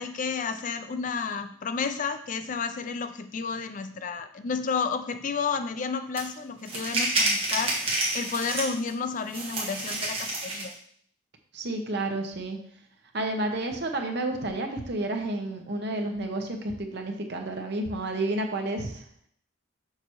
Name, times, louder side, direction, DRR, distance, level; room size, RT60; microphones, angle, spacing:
voice 1, 0.0-7.8 8.1-10.7, left 5 dB, 40° left, 9 dB, 0.4 m, -31 dB
sound 1, 6.2-6.3 6.7-8.9 9.3-10.7, right 2 dB, 30° right, 1.6 m, -28 dB
voice 2, 11.5-12.6 13.1-19.0, right 2 dB, 55° right, 4 dB, 0.9 m, -30 dB
6.6 x 5.6 x 3.1 m, 0.62 s
head